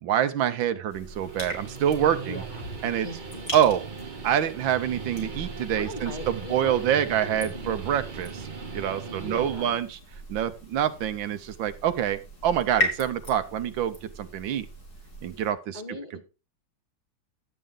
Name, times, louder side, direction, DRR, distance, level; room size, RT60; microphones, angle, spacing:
voice 1, 0.0-2.4 2.8-3.1 3.5-3.8 4.2-8.5 8.7-10.0 10.3-14.7 15.2-15.8, right 10 dB, 75° right, 11 dB, 1.5 m, -26 dB
sound 1, 0.9-15.5, equal, 50° left, 4.0 m, -39 dB
Guitar, 1.0-9.8, right 5 dB, 30° right, 1.1 m, -39 dB
voice 2, 2.2-3.5 5.7-7.9 9.0-9.7 15.7-16.2, equal, 25° left, 4 dB, 1.3 m, -39 dB
11.0 x 8.1 x 3.7 m, 0.31 s
omnidirectional pair, 2.2 m